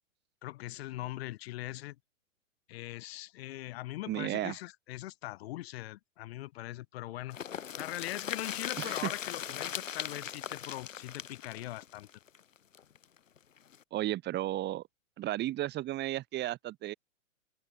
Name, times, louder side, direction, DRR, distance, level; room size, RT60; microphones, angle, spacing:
voice 1, 0.4-2.0 2.7-7.4 7.8-12.1, left 16 dB, 50° left, 6.0 m, -41 dB
voice 2, 4.1-4.6 8.8-9.1 13.9-14.8 15.2-16.9, right 15 dB, 25° right, 4.2 m, -34 dB
sound 1, 7.3-13.0 13.4-13.5 13.7-13.8, left 8 dB, 70° left, 4.6 m, -39 dB
hypercardioid pair, 120°, 40 cm